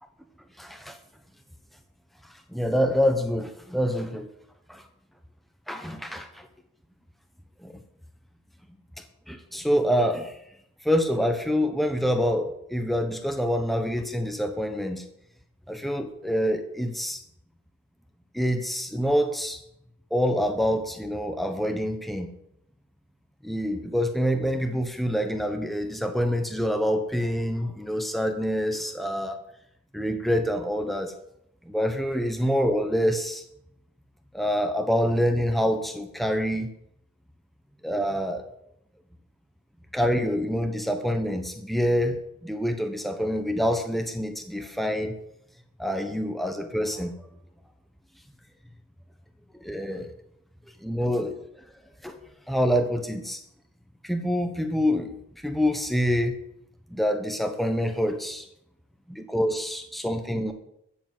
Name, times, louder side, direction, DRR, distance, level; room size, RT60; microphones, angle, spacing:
voice 1, 0.6-1.0 2.5-4.3 4.7-4.8 5.7-6.5 7.6-7.7 9.3-10.3 10.8-15.0 15.7-17.2 18.3-19.6 20.1-22.3 23.4-29.4 29.9-31.1 31.7-33.4 34.3-36.7 37.8-38.4 39.9-45.2 45.8-47.1 49.6-50.1 50.8-51.4 52.0-52.2 52.5-53.4 54.0-55.1 55.4-56.4 56.9-58.4 59.1-60.5, equal, ahead, 5 dB, 1.2 m, -26 dB
14.0 x 7.0 x 7.7 m, 0.78 s
head